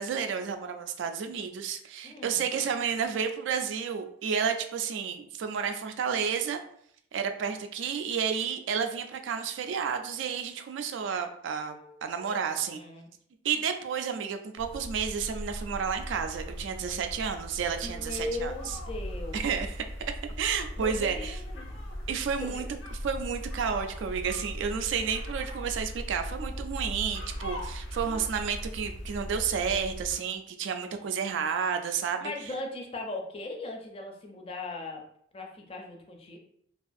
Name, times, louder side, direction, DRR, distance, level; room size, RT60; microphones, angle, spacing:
voice 1, 0.0-6.6 7.1-12.8 13.4-18.7 19.3-19.8 20.4-21.4 22.1-22.6 23.0-32.3, right 6 dB, 70° right, 6 dB, 0.3 m, -31 dB
voice 2, 2.0-2.7 11.7-13.1 17.8-19.5 20.8-22.1 22.4-22.8 28.0-28.3 32.2-35.0 35.3-36.4, left 2 dB, 30° left, 2 dB, 0.4 m, -39 dB
sound 1, 14.6-30.2, equal, 85° left, 0.6 m, -39 dB
2.4 x 2.3 x 2.5 m, 0.69 s
head